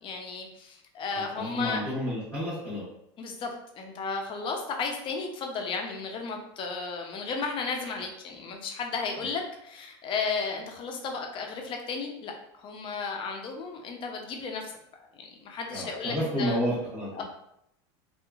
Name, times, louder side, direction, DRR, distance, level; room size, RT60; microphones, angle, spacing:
voice 1, 0.0-1.8 3.2-3.5 3.8-14.7 15.2-16.6 17.1-17.2, left 4 dB, 35° left, 3 dB, 0.5 m, -34 dB
voice 2, 1.1-2.8 15.7-17.2, equal, 10° right, -13 dB, 1.2 m, -31 dB
2.8 x 2.4 x 2.3 m, 0.77 s
supercardioid pair, 120°, 15 cm